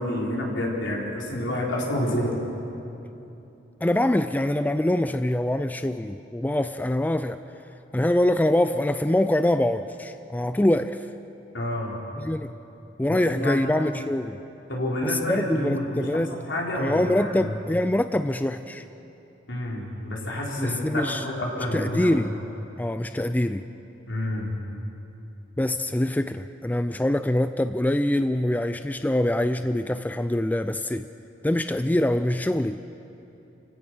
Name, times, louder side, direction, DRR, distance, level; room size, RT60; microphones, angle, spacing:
voice 1, 0.0-2.4 11.5-12.0 13.1-13.7 14.7-17.5 19.5-22.2 24.1-24.5, left 1 dB, 70° left, -3 dB, 4.4 m, -29 dB
voice 2, 3.8-7.4 7.9-11.1 12.2-12.5 13.0-14.4 15.0-16.4 16.8-18.8 20.6-21.2 21.7-22.3 22.8-23.7 25.6-31.1 31.4-32.8, left 1 dB, 10° left, 10 dB, 0.4 m, -24 dB
29.5 x 16.5 x 6.2 m, 2.9 s
head